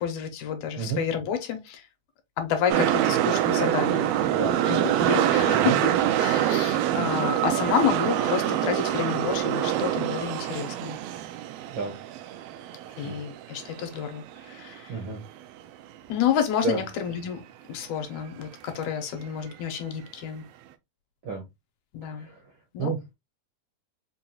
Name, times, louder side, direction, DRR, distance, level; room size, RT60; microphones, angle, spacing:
voice 1, 0.0-1.8 2.4-4.1 4.7-11.0 13.0-15.0 16.1-17.4 17.7-20.4 21.9-22.3 22.7-22.9, left 8 dB, 80° left, 2.0 m, -29 dB
sound 1, 2.7-14.8 15.0-15.1, right 11 dB, 85° right, 1.4 m, -25 dB
voice 2, 14.9-15.2 16.6-16.8 21.2-21.4 22.0-22.4 22.8-23.1, right 4 dB, 65° right, 1.3 m, -30 dB
5.2 x 2.3 x 2.7 m
omnidirectional pair, 3.4 m